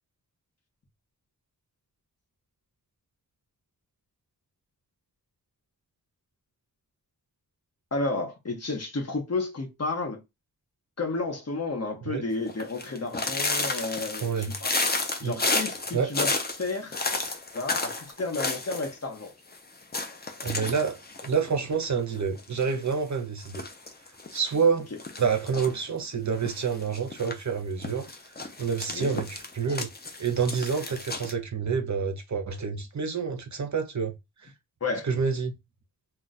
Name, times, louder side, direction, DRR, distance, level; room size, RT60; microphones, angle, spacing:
voice 1, 7.9-10.2 11.0-14.7 15.2-17.0 17.5-19.3 28.9-29.2 34.8-35.1, left 3 dB, 40° left, 0.9 m, -32 dB
sound 1, 12.5-18.9 19.2-19.3 19.5-19.6 19.9-22.0 22.4-22.9 23.4-24.4 25.0-25.8 26.4-27.3 27.8-31.3, left 3 dB, 25° left, 0.5 m, -31 dB
voice 2, 14.2-14.5 15.2-15.4 15.9-16.1 20.4-23.6 24.3-24.9 25.2-28.0 28.6-29.9 30.2-34.2 34.4-34.5 35.0-35.5, right 6 dB, 45° right, 0.6 m, -28 dB
2.3 x 2.2 x 3.9 m
wide cardioid pair, 105°, 38 cm